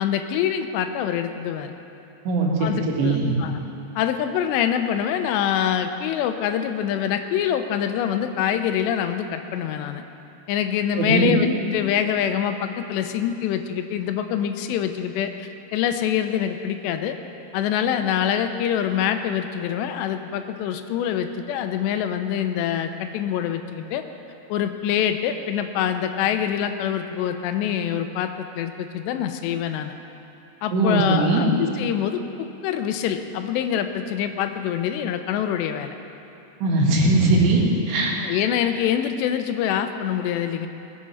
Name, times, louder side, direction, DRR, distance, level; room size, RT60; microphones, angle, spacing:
voice 1, 0.0-1.8 2.6-3.6 4.0-10.0 10.5-17.1 17.5-24.0 24.5-30.0 30.6-36.0 38.2-40.7, left 9 dB, 85° left, 8 dB, 2.9 m, -25 dB
voice 2, 2.3-2.7 3.0-3.4 10.9-11.4 30.7-31.5 36.6-38.1, right 2 dB, 80° right, -2 dB, 3.9 m, -20 dB
19.5 x 7.5 x 5.6 m, 2.8 s
omnidirectional pair, 4.9 m